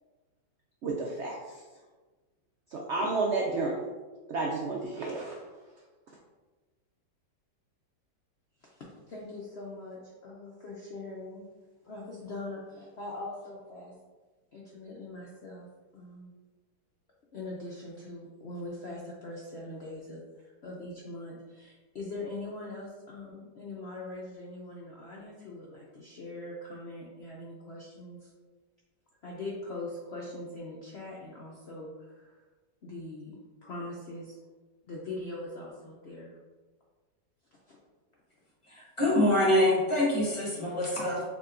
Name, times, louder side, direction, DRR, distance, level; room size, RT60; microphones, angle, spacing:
voice 1, 0.8-1.6 2.7-3.9 4.3-5.3, right 3 dB, 75° right, -2 dB, 0.6 m, -31 dB
voice 2, 8.6-11.5 11.8-13.9 14.5-15.7 15.9-16.3 17.3-28.3 29.2-32.4 32.8-34.4 34.8-36.4 37.7-37.8, left 2 dB, 65° left, -4 dB, 0.6 m, -42 dB
voice 3, 38.7-41.2, left 1 dB, 25° left, -5 dB, 0.9 m, -25 dB
6.8 x 2.8 x 2.5 m, 1.3 s
omnidirectional pair, 1.8 m